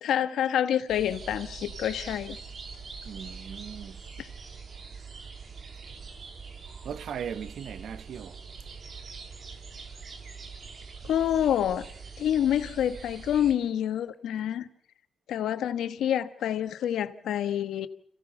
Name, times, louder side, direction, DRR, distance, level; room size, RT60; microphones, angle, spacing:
voice 1, 0.0-2.4 4.2-4.3 11.0-11.9 12.2-14.7 15.3-17.9, left 10 dB, 90° left, 1.3 m, -27 dB
sound 1, 0.9-13.5, right 5 dB, 60° right, 3.0 m, -43 dB
voice 2, 3.0-4.0 6.8-8.4, right 8 dB, 75° right, 0.9 m, -38 dB
26.5 x 16.5 x 6.9 m
cardioid pair, 75°, 0 cm